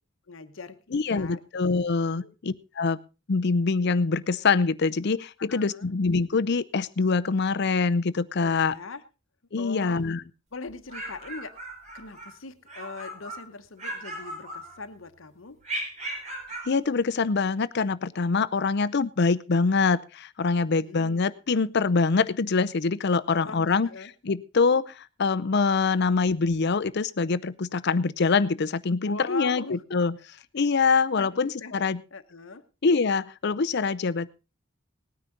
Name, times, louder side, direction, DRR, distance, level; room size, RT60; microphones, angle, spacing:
voice 1, 0.3-1.4 2.2-2.3 5.4-5.9 8.4-9.0 9.6-10.0 10.5-11.6 11.9-15.6 20.6-21.2 23.3-24.1 29.0-29.8 30.2-30.3 30.8-31.8 32.1-32.6, left 4 dB, 85° left, 10 dB, 1.0 m, -41 dB
voice 2, 0.9-3.0 3.3-8.7 9.5-10.2 16.7-23.9 24.2-30.2 30.5-32.0 32.8-34.3, left 4 dB, 60° left, 16 dB, 0.6 m, -24 dB
sound 1, 10.7-12.3 12.7-13.5 13.8-15.0 15.6-16.7, right 1 dB, 35° right, 4.5 m, -37 dB
19.0 x 9.5 x 3.8 m, 0.31 s
head